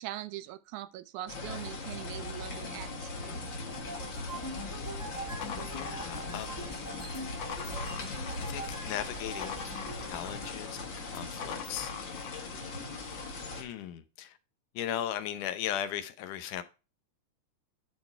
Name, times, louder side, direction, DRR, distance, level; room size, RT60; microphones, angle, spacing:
voice 1, 0.0-3.8, right 14 dB, 80° right, 1.9 m, -42 dB
sound 1, 1.3-13.6, left 3 dB, 45° left, 2.1 m, -39 dB
sound 2, 3.7-10.6, right 1 dB, 20° left, 0.5 m, -43 dB
sound 3, 5.4-6.5 7.1-8.5 8.9-10.4 11.1-12.4, left 7 dB, 60° left, 1.5 m, -43 dB
voice 2, 5.7-6.6 7.0-7.2 8.4-9.7 10.0-12.5 13.6-14.4 14.7-16.6, left 11 dB, 85° left, 2.4 m, -38 dB
11.0 x 4.1 x 4.5 m
omnidirectional pair, 3.6 m